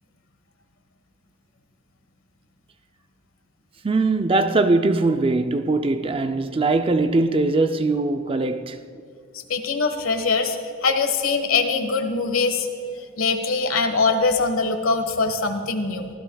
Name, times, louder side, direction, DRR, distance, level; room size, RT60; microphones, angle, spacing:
voice 1, 3.8-8.8, right 3 dB, 25° right, 0.4 m, -21 dB
voice 2, 9.5-12.7 13.0-16.1, left 4 dB, 85° left, 1.3 m, -22 dB
24.5 x 15.5 x 2.3 m
head